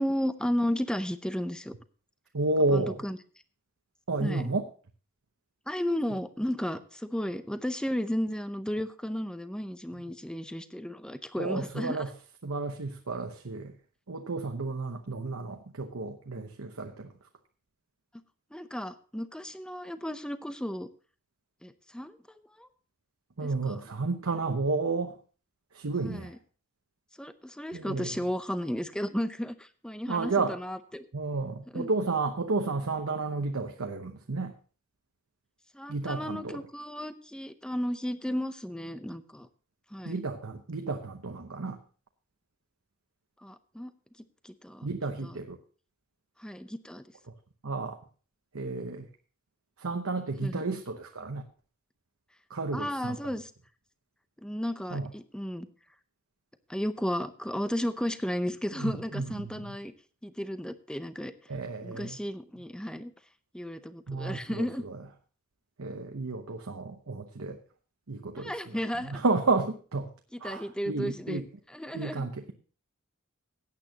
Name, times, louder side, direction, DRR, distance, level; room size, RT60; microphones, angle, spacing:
voice 1, 0.0-1.7 2.7-3.2 4.2-4.5 5.7-12.1 18.5-20.9 21.6-22.2 22.6-22.7 23.4-23.8 26.0-26.4 27.2-31.1 31.7-31.9 35.7-39.5 39.9-40.2 43.4-43.9 44.4-44.9 45.2-45.4 46.4-47.0 50.4-50.6 52.7-53.5 54.4-55.7 56.7-59.9 60.2-61.3 61.8-63.1 63.5-64.8 68.4-69.2 70.3-71.4 71.7-72.3, equal, 5° left, 11 dB, 0.6 m, -34 dB
voice 2, 2.3-3.0 4.1-4.6 11.4-12.1 12.4-13.7 14.1-17.1 23.4-25.1 25.7-26.3 27.7-28.1 30.1-30.6 31.1-34.5 35.9-36.6 40.0-41.8 44.8-45.6 47.6-48.0 48.5-49.0 49.8-51.4 52.5-53.2 54.9-55.1 58.8-59.8 61.5-62.2 64.1-64.9 65.8-67.6 68.1-68.5 69.1-70.1 70.4-71.4 71.9-72.5, right 3 dB, 80° right, 4 dB, 0.9 m, -31 dB
16.5 x 8.6 x 2.9 m, 0.39 s
head